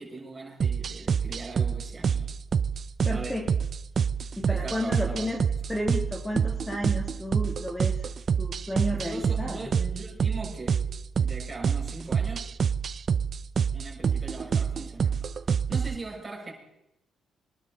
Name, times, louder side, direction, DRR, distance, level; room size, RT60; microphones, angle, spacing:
voice 1, 0.0-2.3 3.0-3.5 4.4-5.6 8.9-10.8 11.2-12.5 13.7-15.3 15.7-16.5, right 3 dB, 25° right, 6.2 m, -40 dB
sound 1, 0.6-16.0, right 7 dB, 50° right, 0.5 m, -27 dB
voice 2, 3.0-3.5 4.4-5.4 5.7-8.0 8.4-9.6, left 1 dB, 10° left, 2.5 m, -32 dB
25.0 x 11.5 x 3.9 m
cardioid pair, 90°, 0 cm